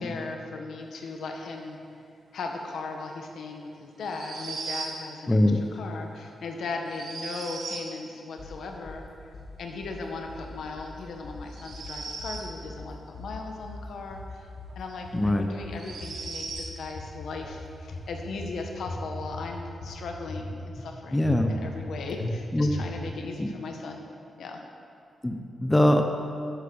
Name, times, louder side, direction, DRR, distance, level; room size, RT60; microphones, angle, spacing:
voice 1, 0.0-1.8 2.3-5.4 5.7-9.1 9.6-14.5 14.7-24.0 24.4-24.6, left 3 dB, 80° left, 2 dB, 1.5 m, -37 dB
sound 1, 4.0-5.0 6.9-7.9 11.5-12.5 14.7-14.8 15.7-16.7, right 4 dB, 80° right, 1.7 m, -37 dB
voice 2, 5.3-5.6 15.1-15.5 21.1-21.5 22.5-22.7 23.4-23.5 25.2-26.0, left 1 dB, 10° left, 4 dB, 0.9 m, -22 dB
sound 2, 8.4-9.0 9.3-10.0 10.3-11.0 11.2-11.9 12.2-12.9 13.1-13.8 14.1-14.8 15.0-15.7 16.0-16.7 16.9-17.6 17.9-18.6 18.9-19.5 19.8-20.5 20.7-20.9 21.2-21.9 22.2-22.3 22.7-23.2, left 2 dB, 50° left, 2.0 m, -39 dB
10.5 x 8.3 x 7.1 m, 2.4 s
wide cardioid pair, 115°, 0 cm